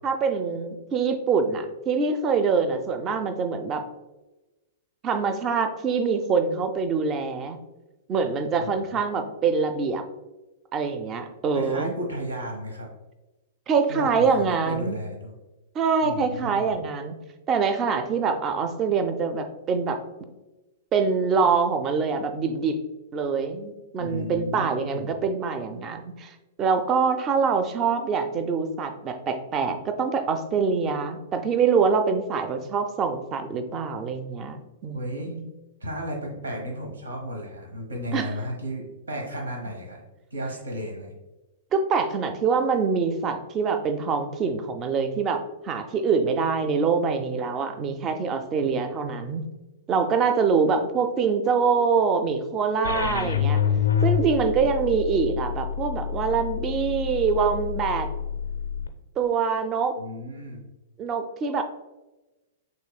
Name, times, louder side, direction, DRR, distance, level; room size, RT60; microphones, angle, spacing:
voice 1, 0.0-3.8 5.0-7.6 8.1-10.0 10.7-11.9 13.7-15.0 15.7-17.2 17.5-20.0 20.9-22.8 23.1-26.3 26.6-35.4 38.1-38.3 41.7-49.4 49.9-53.6 54.0-58.1 59.2-60.0 61.0-61.6, right 5 dB, 30° right, 7 dB, 0.5 m, -25 dB
voice 2, 8.6-9.0 11.5-12.9 13.9-15.4 16.0-16.8 24.0-25.2 34.9-35.3 35.8-40.0 40.3-41.1 53.0-53.5 60.0-60.6, equal, 75° right, 1 dB, 1.0 m, -34 dB
sound 1, 52.8-58.9, left 8 dB, 75° left, 0.4 m, -27 dB
6.3 x 2.9 x 2.3 m, 1.1 s
figure-of-eight pair, 105°, 0 cm